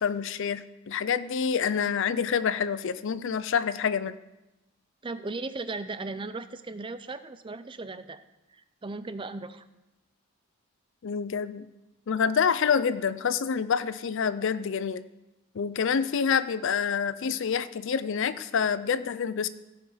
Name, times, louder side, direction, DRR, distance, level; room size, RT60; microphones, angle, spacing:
voice 1, 0.0-4.1 11.0-11.7 12.1-15.0 15.5-19.5, left 6 dB, 60° left, 15 dB, 0.4 m, -27 dB
voice 2, 5.0-8.2 8.5-9.6, right 3 dB, 25° right, 12 dB, 0.4 m, -37 dB
16.0 x 5.8 x 5.0 m, 0.99 s
head